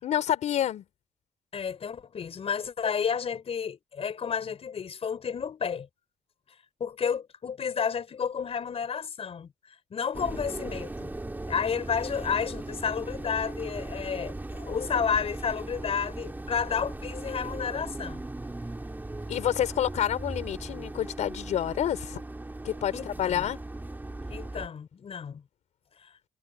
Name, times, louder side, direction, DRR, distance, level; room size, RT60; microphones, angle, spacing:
voice 1, 0.0-0.8 19.3-22.2 22.6-23.6, left 10 dB, 80° left, 4.7 m, -28 dB
voice 2, 1.5-5.9 6.5-11.1 11.5-18.2 22.9-23.5 24.3-25.4 26.0-26.1, left 7 dB, 55° left, 5.4 m, -31 dB
sound 1, 10.1-24.7, right 2 dB, 15° right, 2.7 m, -38 dB
cardioid pair, 75°, 12 cm